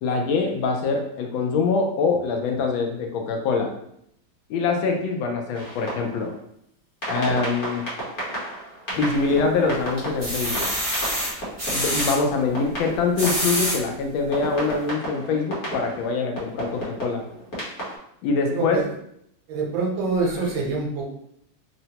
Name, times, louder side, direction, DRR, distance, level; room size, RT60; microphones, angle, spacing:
voice 1, 0.0-3.7 4.5-6.3 7.1-7.8 9.0-10.7 11.7-17.2 18.2-18.8, left 4 dB, 80° left, 3 dB, 1.3 m, -24 dB
sound 1, 5.5-6.4 7.0-13.9 14.3-18.0, right 1 dB, 45° left, 1.1 m, -33 dB
sound 2, 8.9-9.5 10.0-12.2 12.9-13.8 14.4-14.5 14.8-14.9, equal, 50° right, 0.4 m, -26 dB
voice 2, 18.5-18.8 19.5-21.0, right 4 dB, 75° right, -2 dB, 1.5 m, -25 dB
3.7 x 2.1 x 2.8 m, 0.72 s
omnidirectional pair, 2.2 m